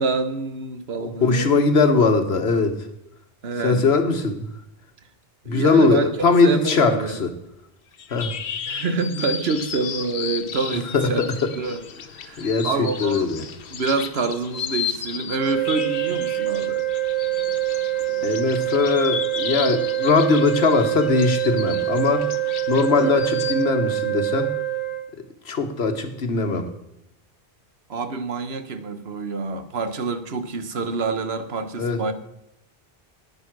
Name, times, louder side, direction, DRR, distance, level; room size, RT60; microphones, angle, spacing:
voice 1, 0.0-1.5 3.4-3.9 5.4-7.2 8.7-11.8 12.1-13.3 13.7-16.8 23.0-23.2 27.9-32.1, right 4 dB, 80° right, 10 dB, 1.3 m, -27 dB
voice 2, 1.0-2.8 3.6-4.4 5.5-7.3 8.1-8.3 10.9-11.3 12.4-12.7 13.0-13.4 18.2-22.3 22.7-24.5 25.4-26.7 31.8-32.0, left 4 dB, 85° left, 7 dB, 1.5 m, -20 dB
sound 1, 7.9-23.6, left 7 dB, 65° left, 1.0 m, -34 dB
sound 2, 15.3-25.0, right 13 dB, 10° left, 1.1 m, -25 dB
9.5 x 9.4 x 6.0 m, 0.83 s
omnidirectional pair, 1.0 m